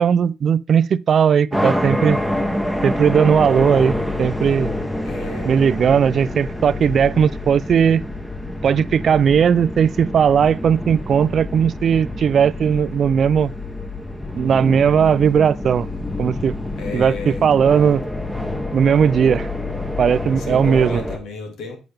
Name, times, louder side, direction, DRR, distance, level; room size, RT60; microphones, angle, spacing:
voice 1, 0.0-2.2 2.8-4.7 5.5-8.0 8.6-13.5 14.4-15.9 16.2-16.5 16.9-18.0 18.7-19.5 20.0-21.0, right 7 dB, 55° right, 0.3 m, -17 dB
sound 1, 1.5-21.2, left 1 dB, 5° left, 1.0 m, -27 dB
voice 2, 5.0-5.8 16.8-17.4 20.4-21.8, left 3 dB, 85° left, 2.0 m, -33 dB
7.8 x 5.1 x 3.4 m
cardioid pair, 90°, 0 cm